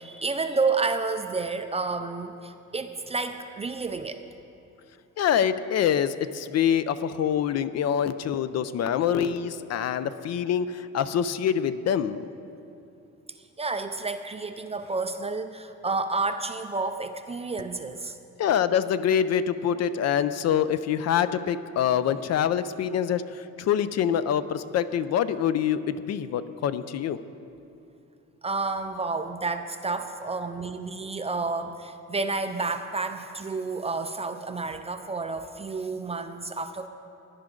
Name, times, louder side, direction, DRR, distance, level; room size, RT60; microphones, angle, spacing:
voice 1, 0.0-4.2 13.6-18.2 28.4-36.9, right 3 dB, 20° right, 8 dB, 0.4 m, -30 dB
voice 2, 5.2-12.3 18.4-27.2, left 9 dB, 55° left, 13 dB, 0.5 m, -25 dB
16.5 x 10.5 x 3.8 m, 2.6 s
cardioid pair, 150°, 32 cm